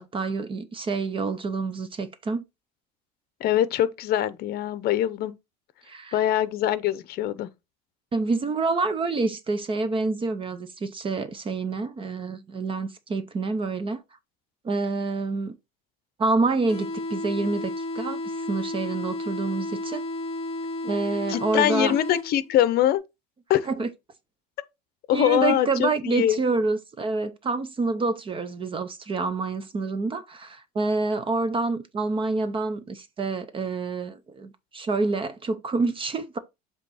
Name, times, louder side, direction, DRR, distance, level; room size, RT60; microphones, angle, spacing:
voice 1, 0.0-2.4 5.9-6.2 8.1-14.0 14.6-15.6 16.2-18.2 18.5-20.0 20.8-22.0 23.7-23.9 25.1-36.4, right 3 dB, 25° right, 0.7 m, -27 dB
voice 2, 3.4-5.3 6.1-7.5 21.3-23.0 23.5-23.7 25.1-26.4, left 12 dB, 50° left, 0.7 m, -23 dB
sound 1, 16.7-22.7, left 1 dB, 30° left, 1.0 m, -32 dB
7.5 x 3.0 x 4.1 m
cardioid pair, 130°, 21 cm